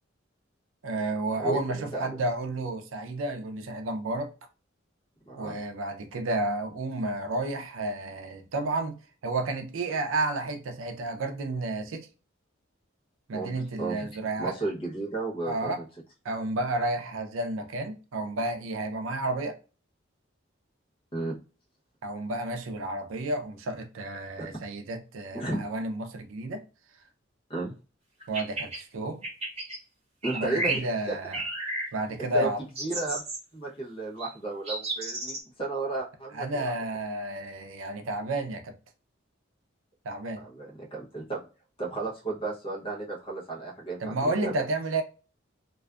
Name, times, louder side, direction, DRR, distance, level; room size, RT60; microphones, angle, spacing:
voice 1, 0.8-4.3 5.4-12.1 13.3-14.6 15.4-15.8 16.2-19.6 22.0-26.6 28.3-29.3 30.3-31.4 31.9-32.6 36.3-38.7 40.1-40.4 44.0-45.0, right 2 dB, 85° right, 0.5 m, -31 dB
voice 2, 1.4-2.2 5.3-5.6 13.3-13.5 13.8-14.1 14.4-15.8 21.1-21.4 24.4-24.5 25.3-25.6 27.5-27.7 30.2-31.2 32.3-32.5 32.8-33.2 33.5-36.7 40.3-41.4 41.8-44.5, right 3 dB, 25° left, 0.7 m, -33 dB
sound 1, 28.2-28.8 29.2-29.8 30.2-30.8 31.3-31.9 32.8-33.4 34.2-34.3 34.7-35.4, right 2 dB, 30° right, 0.9 m, -32 dB
2.5 x 2.3 x 2.3 m
head